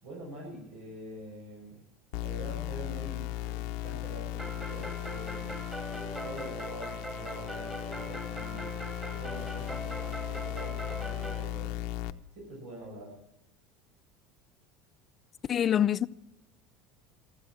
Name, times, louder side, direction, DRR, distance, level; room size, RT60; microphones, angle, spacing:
voice 1, 0.0-1.8 2.2-5.6 5.9-8.7 9.0-11.7 12.3-13.2, right 1 dB, 80° right, 6.3 m, -45 dB
sound 1, 2.1-12.1, left 15 dB, 70° left, 0.7 m, -37 dB
sound 2, 4.4-11.4, right 1 dB, 15° right, 2.7 m, -41 dB
voice 2, 15.5-16.1, left 10 dB, 35° left, 0.6 m, -25 dB
13.5 x 13.5 x 7.3 m
supercardioid pair, 115°, 0 cm